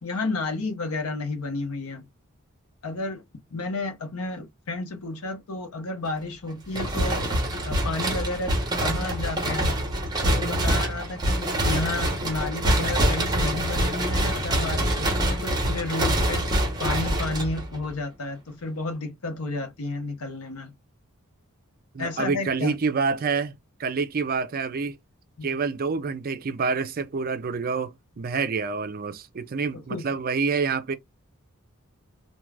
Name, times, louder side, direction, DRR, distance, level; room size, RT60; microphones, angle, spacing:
voice 1, 0.0-2.1 2.8-3.2 3.5-7.3 7.6-8.6 8.8-9.7 10.2-16.4 16.8-20.7 22.0-22.7 25.4-25.6 29.7-30.1, left 2 dB, 80° left, 0.8 m, -32 dB
sound 1, 6.7-17.9, right 1 dB, 20° right, 0.8 m, -25 dB
voice 2, 21.9-23.5 23.8-25.0 25.4-30.9, right 5 dB, 40° right, 0.4 m, -27 dB
2.3 x 2.3 x 3.2 m
head